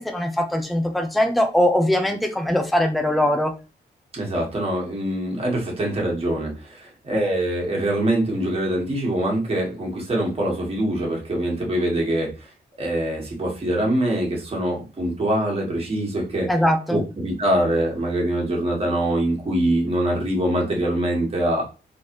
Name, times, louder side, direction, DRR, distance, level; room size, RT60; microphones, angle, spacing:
voice 1, 0.0-3.5 16.5-17.0, left 1 dB, ahead, 5 dB, 0.5 m, -21 dB
voice 2, 4.1-12.5 12.8-16.5 16.9-21.6, right 1 dB, 35° right, -2 dB, 1.5 m, -24 dB
4.0 x 3.2 x 3.0 m, 0.31 s
wide cardioid pair, 140°, 18 cm